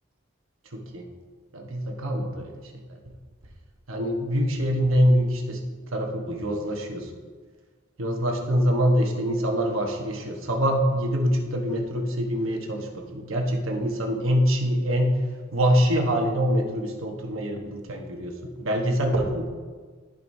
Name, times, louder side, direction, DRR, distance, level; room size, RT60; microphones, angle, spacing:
voice 1, 0.7-1.0 1.5-3.0 3.9-5.6 5.9-7.1 8.0-15.1 15.5-19.5, equal, 80° right, 2 dB, 1.2 m, -25 dB
14.0 x 5.2 x 2.7 m, 1.5 s
head